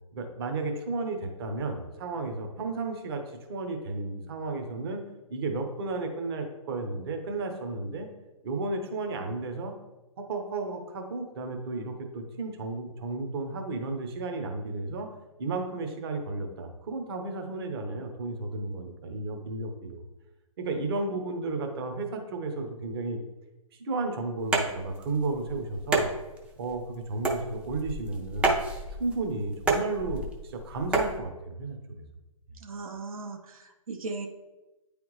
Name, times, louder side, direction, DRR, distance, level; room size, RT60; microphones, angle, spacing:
voice 1, 0.1-5.0 5.3-8.1 8.4-9.7 10.2-15.1 15.4-20.0 20.6-23.2 23.8-26.1 26.6-28.5 28.9-32.0, right 3 dB, 40° right, 4 dB, 1.0 m, -33 dB
sound 1, 24.4-31.2, right 2 dB, 5° right, 0.5 m, -30 dB
voice 2, 32.6-34.3, right 3 dB, 70° right, 3 dB, 0.9 m, -38 dB
9.1 x 3.4 x 3.1 m, 1.0 s
hypercardioid pair, 140°, 18 cm